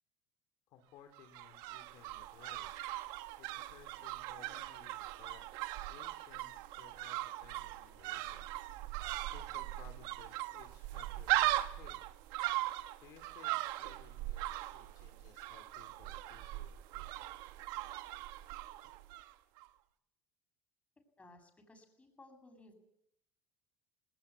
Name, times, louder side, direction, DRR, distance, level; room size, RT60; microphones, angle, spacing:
voice 1, 0.7-2.9 3.4-5.5 5.9-8.5 9.3-12.0 13.0-17.1, left 9 dB, 65° left, 5 dB, 3.0 m, -60 dB
sound 1, 1.1-19.3 19.6-19.7, right 16 dB, 70° right, 1.4 m, -39 dB
voice 2, 21.7-22.7, left 2 dB, 20° left, 5 dB, 7.8 m, -58 dB
19.5 x 19.0 x 8.5 m, 0.77 s
supercardioid pair, 90°, 7 cm